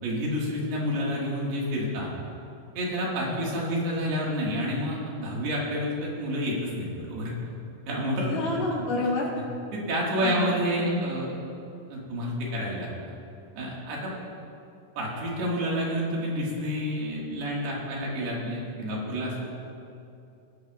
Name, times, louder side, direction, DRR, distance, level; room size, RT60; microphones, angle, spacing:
voice 1, 0.0-2.1 2.8-7.3 7.9-8.4 9.7-11.4 11.9-12.9 13.6-14.1 15.0-19.6, equal, 80° right, -4 dB, 3.9 m, -29 dB
voice 2, 8.2-9.3 10.2-10.5 10.8-11.0, left 2 dB, 70° left, -5 dB, 4.0 m, -29 dB
21.0 x 11.0 x 2.5 m, 2.6 s
omnidirectional pair, 4.6 m